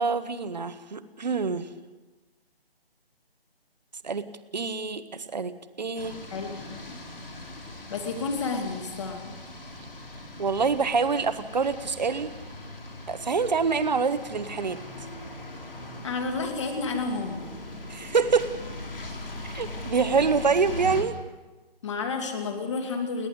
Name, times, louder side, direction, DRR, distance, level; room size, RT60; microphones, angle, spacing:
voice 1, 0.0-1.7 4.0-4.3 4.5-6.2 10.4-12.3 13.1-14.8 17.9-18.5 19.4-21.1, right 5 dB, 45° right, 12 dB, 1.3 m, -26 dB
sound 1, 6.0-21.0, left 1 dB, 60° left, 5.1 m, -40 dB
voice 2, 6.3-7.0 7.9-9.3 16.0-17.5 21.8-23.3, left 4 dB, 30° left, 5 dB, 2.7 m, -31 dB
30.0 x 11.0 x 9.8 m, 1.2 s
figure-of-eight pair, 150°, 31 cm